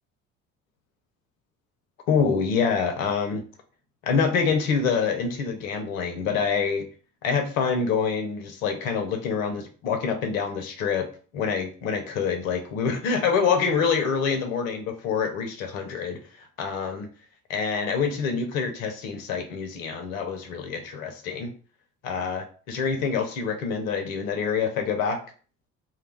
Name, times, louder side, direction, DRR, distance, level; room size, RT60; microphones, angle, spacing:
voice 1, 2.1-3.4 4.0-6.9 7.2-11.1 11.3-16.2 16.6-17.1 17.5-21.5 22.0-25.2, left 5 dB, 75° left, 5 dB, 0.6 m, -26 dB
2.2 x 2.0 x 3.2 m, 0.39 s
figure-of-eight pair, 45°, 40 cm